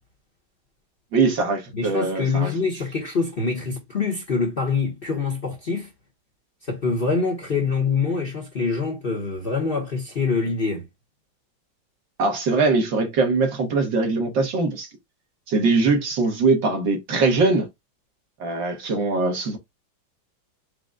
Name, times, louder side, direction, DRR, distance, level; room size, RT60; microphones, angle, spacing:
voice 1, 1.1-2.5 12.2-14.9 15.5-17.7 18.4-19.6, right 3 dB, 70° right, 2.1 m, -21 dB
voice 2, 1.7-5.9 6.7-10.9, left 4 dB, 40° left, 0.9 m, -25 dB
5.0 x 2.2 x 3.7 m
omnidirectional pair, 2.1 m